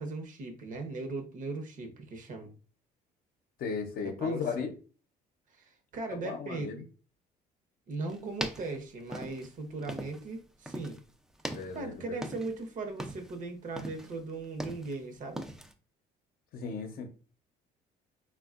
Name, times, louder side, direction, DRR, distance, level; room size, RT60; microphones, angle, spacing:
voice 1, 0.0-2.5 4.2-4.7 5.6-6.7 7.9-11.0 11.7-15.5, right 3 dB, 50° right, 0.8 m, -38 dB
voice 2, 3.6-4.7 6.2-6.8 11.5-12.3 16.5-17.1, left 5 dB, 60° left, 0.6 m, -35 dB
sound 1, 8.1-10.4 10.7-11.0 11.4-12.6 12.9-13.4 13.8-15.0 15.4-15.7, right 1 dB, 5° right, 0.4 m, -40 dB
3.5 x 2.2 x 2.4 m
cardioid pair, 110°, 17 cm